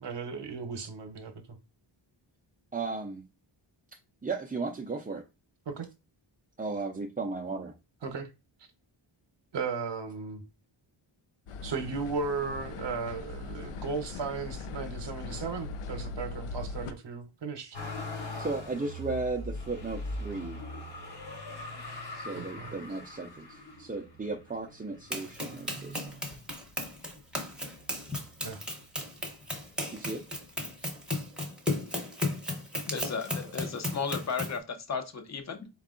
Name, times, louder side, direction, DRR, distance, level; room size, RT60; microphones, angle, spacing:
voice 1, 0.0-1.6 5.7-5.9 8.0-8.3 9.5-10.4 11.6-17.8 22.4-22.8 28.4-28.6, right 4 dB, 60° right, 0.9 m, -36 dB
voice 2, 2.7-3.2 4.2-5.2 6.6-7.7 18.4-20.6 22.2-26.1 29.9-30.2, right 3 dB, 20° right, 0.4 m, -35 dB
sound 1, 11.5-16.9, left 3 dB, 85° left, 0.6 m, -40 dB
Motor vehicle (road), 17.7-26.9 27.5-28.3 28.6-29.7 30.7-30.8, left 1 dB, 50° left, 1.3 m, -42 dB
Run, 25.1-34.6, left 1 dB, ahead, 0.8 m, -35 dB
voice 3, 32.9-35.7, left 5 dB, 35° left, 0.7 m, -34 dB
4.5 x 2.4 x 3.6 m
wide cardioid pair, 160°, 50 cm